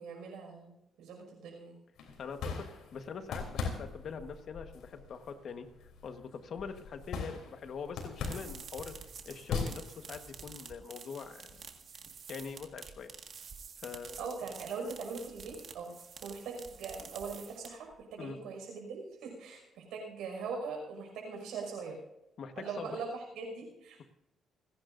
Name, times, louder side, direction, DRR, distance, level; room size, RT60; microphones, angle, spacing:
voice 1, 0.0-1.7 14.2-15.9 16.2-22.0 22.6-24.0, right 4 dB, 85° right, 1 dB, 5.7 m, -41 dB
sound 1, 2.0-10.4, left 5 dB, 80° left, 3.3 m, -41 dB
voice 2, 2.2-5.7 6.0-8.9 9.2-11.6 12.3-13.1 13.8-14.3 18.2-18.4 22.4-23.0, left 6 dB, 60° left, 8 dB, 1.3 m, -43 dB
sound 2, 8.0-17.9, right 6 dB, 55° right, 1.7 m, -49 dB
29.5 x 10.5 x 2.6 m, 0.88 s
cardioid pair, 90°, 0 cm